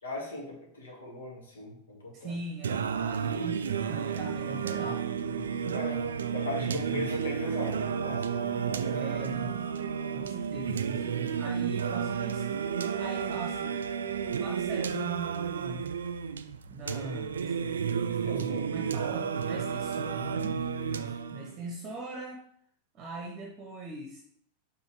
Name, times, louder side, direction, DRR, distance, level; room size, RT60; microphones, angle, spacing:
voice 1, 0.0-2.3 5.7-6.0 6.3-9.1 16.8-17.0 18.2-18.7, left 1 dB, 65° left, -1 dB, 1.8 m, -38 dB
voice 2, 2.1-6.0 6.6-7.1 8.9-9.6 10.1-12.5 12.9-13.8 14.3-15.9 16.7-17.4 18.2-22.4 22.9-24.2, right 2 dB, 30° right, 1 dB, 0.9 m, -41 dB
Singing, 2.6-21.6, right 7 dB, 70° right, 0.3 m, -32 dB
5.6 x 3.6 x 4.8 m, 0.66 s
figure-of-eight pair, 90°, 0 cm